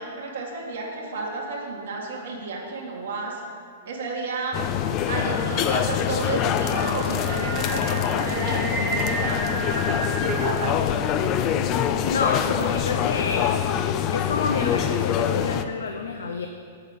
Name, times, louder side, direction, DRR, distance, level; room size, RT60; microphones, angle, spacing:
voice 1, 0.0-3.4 3.9-4.6 5.1-10.9 11.2-11.6, right 3 dB, 75° right, -2 dB, 1.7 m, -32 dB
sound 1, 4.5-15.6, left 9 dB, 35° left, 0.4 m, -25 dB
Singing, 5.7-10.8, equal, 5° right, 1.4 m, -31 dB
voice 2, 12.0-13.7 14.1-16.5, left 4 dB, 85° left, 5 dB, 0.5 m, -28 dB
7.4 x 6.7 x 5.5 m, 2.2 s
hypercardioid pair, 125°, 0 cm